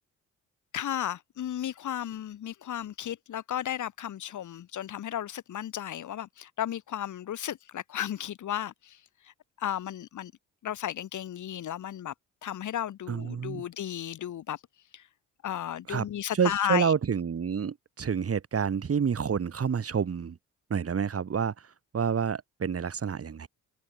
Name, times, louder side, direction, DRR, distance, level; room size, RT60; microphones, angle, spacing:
voice 1, 0.7-9.0 9.2-9.3 9.6-10.3 10.6-12.1 12.4-14.6 14.9-15.0 15.4-16.9, left 11 dB, 65° left, 2.6 m, -34 dB
voice 2, 13.1-13.6 15.9-16.0 16.4-20.4 20.7-21.5 21.9-23.5, right 6 dB, 45° right, 6.3 m, -28 dB
open air
cardioid pair, 85°, 32 cm